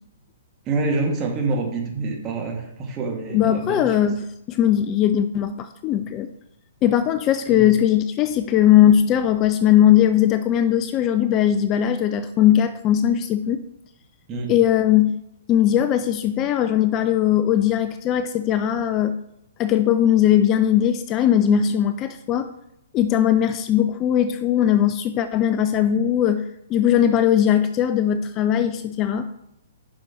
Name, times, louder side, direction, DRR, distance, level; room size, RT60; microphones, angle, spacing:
voice 1, 0.7-4.0 7.5-7.7 14.3-14.5, right 3 dB, 25° right, 0 dB, 2.0 m, -26 dB
voice 2, 3.3-6.3 6.8-13.6 14.5-15.1 15.5-19.2 19.6-22.5 22.9-26.4 26.7-29.3, left 10 dB, 30° left, 10 dB, 0.4 m, -19 dB
10.5 x 6.0 x 3.0 m, 0.78 s
figure-of-eight pair, 120°, 0 cm